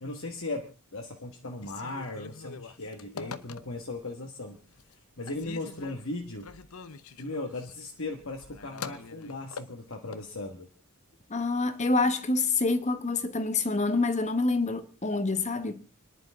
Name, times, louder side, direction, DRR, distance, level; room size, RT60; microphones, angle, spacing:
voice 1, 0.0-4.6 5.2-6.5 7.2-10.7, left 2 dB, 60° left, 1.6 m, -37 dB
Telephone, 1.5-4.0 4.5-5.0 5.3-10.3, left 5 dB, 80° left, 0.9 m, -44 dB
voice 2, 11.3-15.9, left 3 dB, 30° left, 1.2 m, -27 dB
29.5 x 11.0 x 3.6 m
head